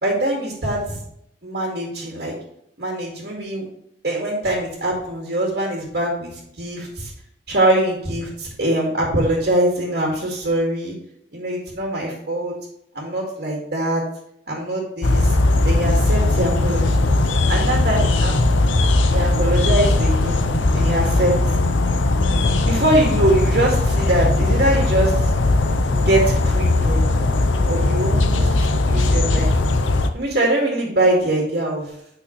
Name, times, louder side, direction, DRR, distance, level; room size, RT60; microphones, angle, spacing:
voice 1, 0.0-1.0 1.4-2.3 2.8-3.6 4.0-6.3 6.6-7.1 7.5-11.0 11.3-12.5 12.9-14.0 14.5-15.4 15.6-16.9 17.5-18.7 19.1-20.4 20.7-21.5 22.6-25.3 26.1-27.0 27.7-29.5 30.1-31.9, right 1 dB, 55° right, -3 dB, 2.1 m, -22 dB
sound 1, 15.0-30.1, left 2 dB, 85° left, 0.7 m, -18 dB
9.0 x 6.1 x 3.2 m, 0.73 s
head